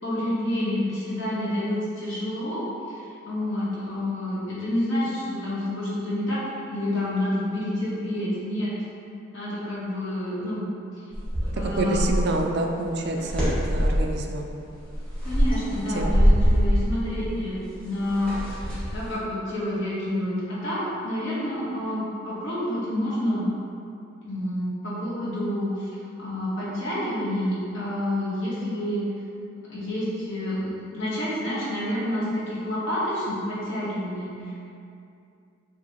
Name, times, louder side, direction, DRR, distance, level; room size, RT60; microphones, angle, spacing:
voice 1, 0.0-6.4 6.7-8.7 9.3-10.7 11.5-12.2 15.2-23.5 24.2-29.0 29.7-34.6, left 1 dB, 65° left, -8 dB, 1.2 m, -29 dB
sound 1, 11.1-12.4 13.0-14.1 14.8-19.1, equal, 5° left, 1.2 m, -23 dB
voice 2, 11.5-14.5 15.9-16.2, right 2 dB, 55° right, 2 dB, 0.3 m, -28 dB
4.7 x 3.0 x 2.9 m, 2.6 s
head